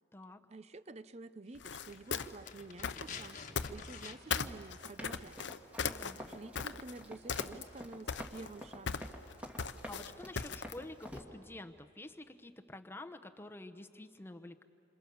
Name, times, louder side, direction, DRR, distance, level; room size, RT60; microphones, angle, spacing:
voice 1, 0.5-5.4 6.1-9.1, right 2 dB, 35° right, 14 dB, 0.6 m, -50 dB
sound 1, 1.6-4.1 4.3-7.0 7.3-7.8 8.1-10.8, left 6 dB, 75° left, 0.8 m, -37 dB
sound 2, 1.6-4.5 4.8-4.9, left 6 dB, 45° left, 1.4 m, -49 dB
Run, 5.0-11.2, equal, 5° right, 2.1 m, -48 dB
voice 2, 5.8-6.2 9.8-14.6, left 2 dB, 10° left, 6 dB, 0.9 m, -49 dB
28.0 x 26.5 x 7.0 m, 2.7 s
head